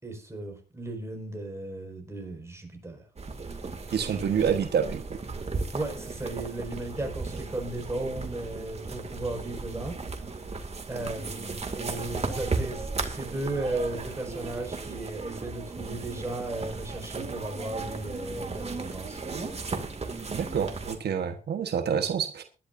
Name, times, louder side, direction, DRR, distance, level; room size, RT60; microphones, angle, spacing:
voice 1, 0.0-3.0 5.7-10.0 10.9-19.6, right 2 dB, 15° right, 2 dB, 5.4 m, -35 dB
sound 1, 3.2-21.0, right 4 dB, 40° right, 2.3 m, -35 dB
voice 2, 3.9-5.2 20.3-22.4, right 7 dB, 75° right, 6 dB, 1.3 m, -28 dB
21.0 x 11.5 x 2.7 m, 0.33 s
cardioid pair, 95°, 17 cm